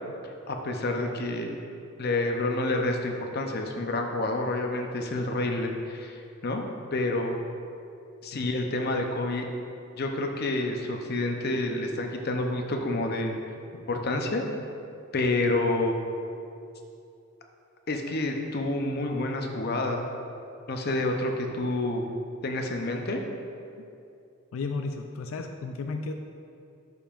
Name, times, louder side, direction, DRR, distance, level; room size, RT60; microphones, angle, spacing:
voice 1, 0.5-1.5 2.0-6.6 6.9-7.3 8.2-9.5 10.0-13.4 13.9-14.4 15.1-15.9 17.9-20.1 20.7-22.1 22.4-23.2, left 2 dB, 50° left, 3 dB, 0.7 m, -28 dB
voice 2, 24.5-26.1, left 4 dB, 90° left, 5 dB, 0.4 m, -33 dB
11.5 x 5.4 x 2.5 m, 2.5 s
head